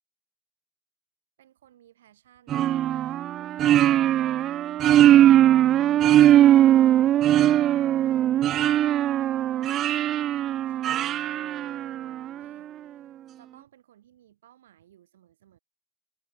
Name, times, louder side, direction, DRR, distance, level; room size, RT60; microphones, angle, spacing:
voice 1, 1.4-5.4 5.8-8.2 9.5-10.2 10.7-15.6, right 11 dB, 80° right, 5.6 m, -59 dB
sound 1, 2.5-12.3, right 12 dB, 60° right, 0.6 m, -20 dB
figure-of-eight pair, 45°, 0 cm